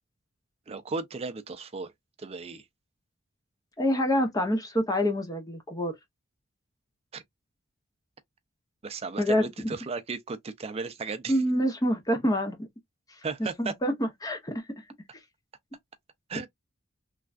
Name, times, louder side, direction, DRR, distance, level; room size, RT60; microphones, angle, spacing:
voice 1, 0.7-1.9 2.2-2.6 7.1-7.2 8.8-11.3 13.2-13.7 16.3-16.5, right 4 dB, 30° right, 0.4 m, -35 dB
voice 2, 3.8-5.9 9.2-9.5 11.3-12.7 13.4-14.6, equal, 20° left, 0.8 m, -26 dB
3.3 x 2.3 x 2.4 m
head